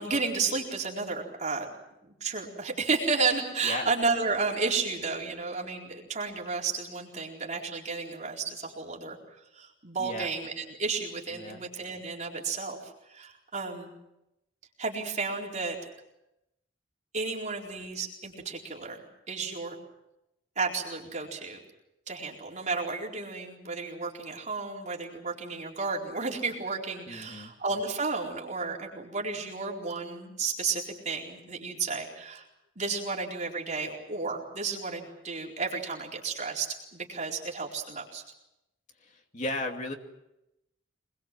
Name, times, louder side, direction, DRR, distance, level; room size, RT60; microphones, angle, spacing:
voice 1, 0.0-1.7 2.0-9.2 9.5-13.9 14.8-15.8 17.1-19.8 20.6-21.6 22.1-32.5 32.8-38.2, right 4 dB, 40° right, -1 dB, 4.3 m, -32 dB
voice 2, 27.1-27.5 39.0-39.9, left 2 dB, 40° left, 3 dB, 2.7 m, -35 dB
26.0 x 21.5 x 7.6 m, 0.89 s
head